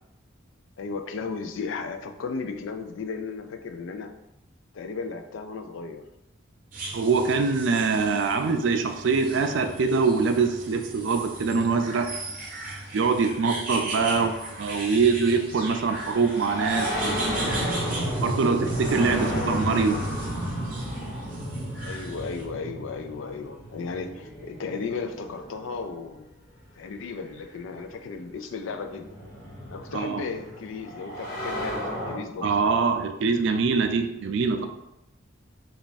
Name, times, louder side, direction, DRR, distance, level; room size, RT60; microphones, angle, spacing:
voice 1, 0.8-4.2 4.7-6.1 13.9-14.4 19.0-19.7 21.8-26.3 26.8-29.2 29.7-32.5, left 4 dB, 80° left, 7 dB, 0.4 m, -35 dB
sound 1, 6.7-22.5, right 2 dB, 45° right, 0.8 m, -38 dB
voice 2, 6.9-12.1 12.9-14.3 14.6-17.2 18.2-20.0 29.9-30.2 32.4-34.7, right 4 dB, 70° right, 6 dB, 0.4 m, -24 dB
sound 2, 15.4-26.0 27.3-27.4 28.4-32.1, equal, 45° left, 1.1 m, -32 dB
3.4 x 2.4 x 4.0 m, 0.88 s
head